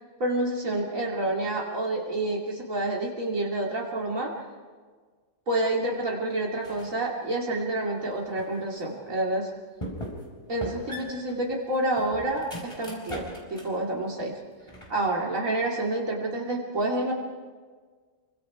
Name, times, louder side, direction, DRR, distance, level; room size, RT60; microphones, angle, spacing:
voice 1, 0.2-4.3 5.5-9.5 10.5-14.4 14.9-17.1, right 1 dB, 75° right, -3 dB, 2.9 m, -28 dB
sound 1, 6.6-7.0 7.5-8.6 9.1-9.2 9.8-10.3 10.6-13.8 14.2-15.1, equal, 20° left, 4.7 m, -40 dB
29.5 x 24.5 x 4.9 m, 1.5 s
omnidirectional pair, 1.4 m